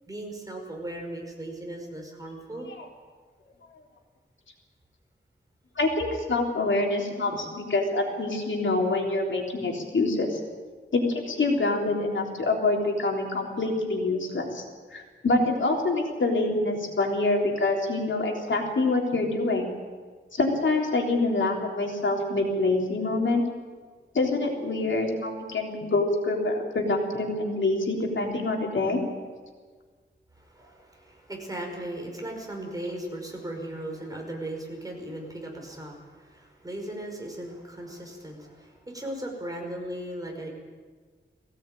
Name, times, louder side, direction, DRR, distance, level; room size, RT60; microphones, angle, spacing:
voice 1, 0.1-2.7 30.4-40.5, right 1 dB, 20° right, 1 dB, 5.3 m, -37 dB
voice 2, 5.8-10.4 10.9-14.6 14.9-19.7 20.3-23.4 24.1-29.0, left 2 dB, 80° left, 1 dB, 3.7 m, -26 dB
21.0 x 17.0 x 9.1 m, 1.5 s
wide cardioid pair, 120°, 19 cm